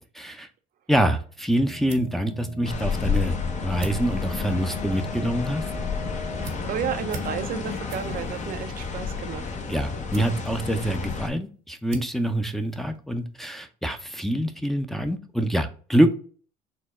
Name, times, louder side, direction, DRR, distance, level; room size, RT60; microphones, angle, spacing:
voice 1, 0.1-0.5 0.9-3.4 3.6-5.6 9.7-16.1, right 1 dB, ahead, 5 dB, 0.6 m, -25 dB
sound 1, 1.3-13.4, right 3 dB, 70° right, 0.9 m, -46 dB
sound 2, 1.6-8.2, left 1 dB, 70° left, 1.2 m, -41 dB
sound 3, 2.6-11.3, left 5 dB, 40° left, 0.8 m, -31 dB
voice 2, 6.3-9.5, right 9 dB, 50° right, 8 dB, 0.5 m, -32 dB
4.1 x 2.2 x 4.1 m, 0.40 s
hypercardioid pair, 70°, 19 cm